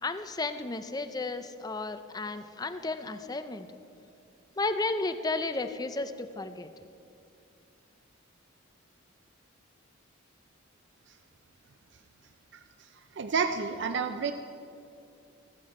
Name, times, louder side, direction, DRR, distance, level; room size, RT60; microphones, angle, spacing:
voice 1, 0.0-3.7 4.6-6.7, left 3 dB, 20° left, 9 dB, 0.5 m, -33 dB
voice 2, 13.1-14.3, right 5 dB, 55° right, 8 dB, 0.5 m, -29 dB
15.0 x 12.5 x 4.3 m, 2.5 s
head